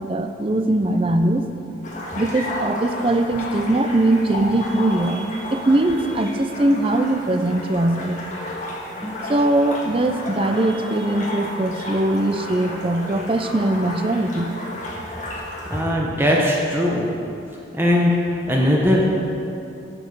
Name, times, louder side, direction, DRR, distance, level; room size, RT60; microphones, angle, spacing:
voice 1, 0.0-1.5 2.2-8.2 9.3-14.5, right 1 dB, 30° right, 8 dB, 0.5 m, -21 dB
sound 1, 1.8-15.8, left 1 dB, 40° left, 1.6 m, -32 dB
voice 2, 15.7-17.1 17.8-18.2 18.5-19.0, left 1 dB, 10° right, -2 dB, 1.0 m, -19 dB
11.5 x 7.2 x 5.4 m, 2.7 s
head